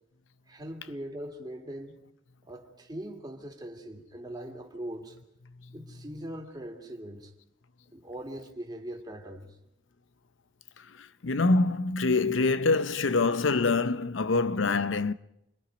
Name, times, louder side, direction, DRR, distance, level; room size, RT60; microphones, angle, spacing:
voice 1, 0.5-2.0 2.4-5.2 5.7-7.3 7.9-9.6, right 1 dB, 20° right, 2.5 m, -41 dB
voice 2, 10.8-15.1, left 3 dB, 85° left, 0.7 m, -26 dB
28.5 x 22.5 x 5.2 m
head